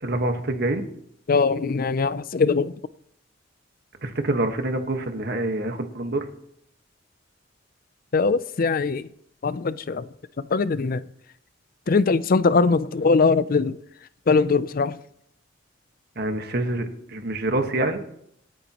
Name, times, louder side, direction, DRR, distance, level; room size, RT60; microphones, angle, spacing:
voice 1, 0.0-0.9 4.0-6.2 16.1-18.0, right 2 dB, 55° right, 1.5 m, -26 dB
voice 2, 1.3-2.7 8.1-9.1 9.4-10.1 10.5-11.0 11.9-13.8 14.3-15.0, left 4 dB, 50° left, 0.5 m, -21 dB
26.5 x 9.2 x 3.0 m
head